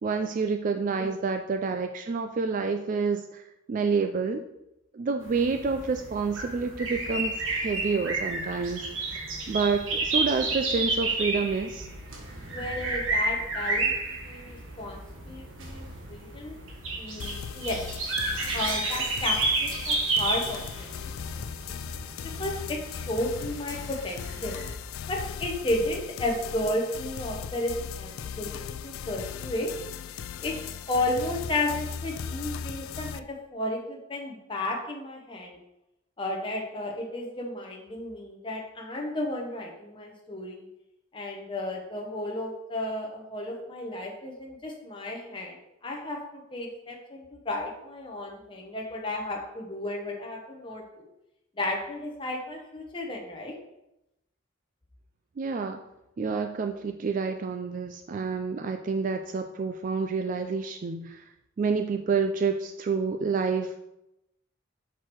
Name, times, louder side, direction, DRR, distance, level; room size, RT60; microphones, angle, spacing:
voice 1, 0.0-3.4 3.7-4.4 4.9-11.9 55.4-55.8 56.2-61.2 61.6-63.8, right 4 dB, 40° right, 6 dB, 0.3 m, -28 dB
sound 1, 5.2-24.7, right 2 dB, 80° right, 1.4 m, -31 dB
voice 2, 12.5-13.9 14.2-15.0 15.3-16.5 17.0-17.8 18.5-21.4 21.7-21.8 22.4-24.5 25.1-29.7 30.4-30.5 30.9-35.6 36.2-40.6 41.1-51.1 51.6-53.5, left 1 dB, 25° left, 0 dB, 0.8 m, -33 dB
sound 2, 17.2-33.2, left 7 dB, 85° left, 0.3 m, -38 dB
6.0 x 4.6 x 4.5 m, 0.89 s
head